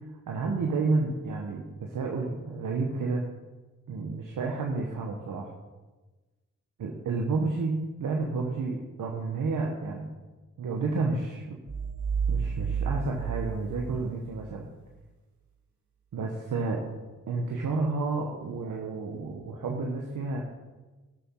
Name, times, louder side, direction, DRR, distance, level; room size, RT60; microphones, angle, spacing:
voice 1, 0.3-3.3 3.9-5.5 6.8-10.1 10.6-11.6 12.3-14.7 16.1-16.8 17.3-20.4, right 3 dB, 80° right, 0 dB, 1.3 m, -30 dB
sound 1, 11.7-14.5, right 6 dB, 65° right, 1.9 m, -31 dB
12.0 x 7.8 x 4.7 m, 1.2 s
cardioid pair, 55°, 32 cm